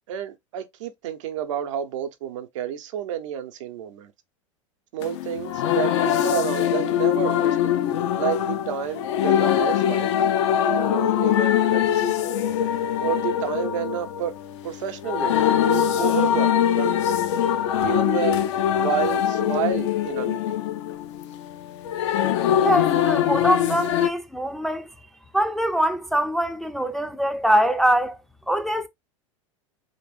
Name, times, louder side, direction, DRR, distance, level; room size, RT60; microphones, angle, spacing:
voice 1, 0.1-4.1 4.9-7.8 8.2-10.1 10.6-12.4 13.0-14.4 14.6-17.0 17.8-18.5 18.8-20.6, right 9 dB, 65° right, 0.7 m, -30 dB
sound 1, 5.0-24.1, left 10 dB, 60° left, 0.5 m, -23 dB
voice 2, 22.6-24.9 25.3-28.2 28.5-28.9, equal, ahead, 0.4 m, -23 dB
3.2 x 2.9 x 3.0 m
hypercardioid pair, 85°, 17 cm